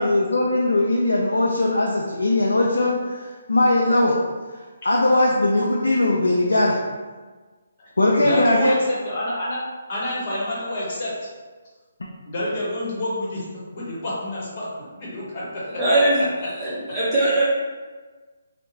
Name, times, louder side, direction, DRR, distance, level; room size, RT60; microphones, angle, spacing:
voice 1, 0.0-4.1 4.5-6.8 8.0-8.7, left 2 dB, 80° left, -2 dB, 0.3 m, -20 dB
voice 2, 8.2-9.6 9.9-11.1 12.3-13.4 13.7-14.7 15.0-15.6, left 1 dB, 45° left, -7 dB, 1.0 m, -28 dB
voice 3, 15.8-16.2 16.5-17.4, right 2 dB, 10° right, -13 dB, 0.7 m, -20 dB
2.7 x 2.1 x 2.6 m, 1.4 s
figure-of-eight pair, 145°, 0 cm